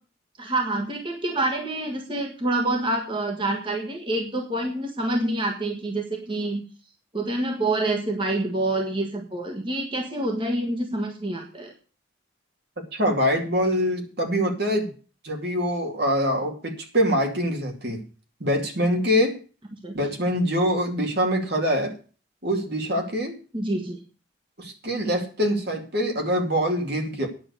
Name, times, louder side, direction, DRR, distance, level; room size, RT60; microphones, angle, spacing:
voice 1, 0.4-6.6 7.1-11.7 19.8-19.9 23.5-24.0, right 2 dB, 25° right, 2 dB, 1.5 m, -27 dB
voice 2, 12.9-14.9 15.2-18.0 18.4-19.4 19.9-21.9 22.4-23.3 24.6-27.3, equal, 55° right, 3 dB, 2.5 m, -24 dB
10.0 x 6.8 x 8.1 m, 0.37 s
head